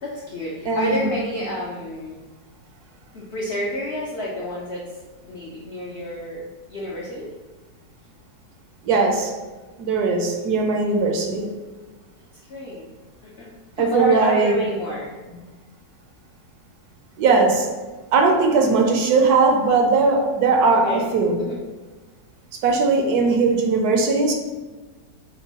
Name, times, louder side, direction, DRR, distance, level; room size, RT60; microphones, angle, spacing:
voice 1, 0.0-2.1 3.1-4.8 5.2-7.3 12.5-12.9 13.4-13.5 13.8-15.1 20.7-21.1 21.4-21.6 23.1-23.3, equal, 70° left, -4 dB, 0.6 m, -29 dB
voice 2, 0.6-1.1 8.8-9.3 9.8-11.5 13.8-14.6 15.3-15.4 17.2-17.7 18.1-21.4 22.6-24.3, right 4 dB, 70° right, 2 dB, 1.0 m, -19 dB
6.1 x 2.2 x 2.8 m, 1.3 s
omnidirectional pair, 1.9 m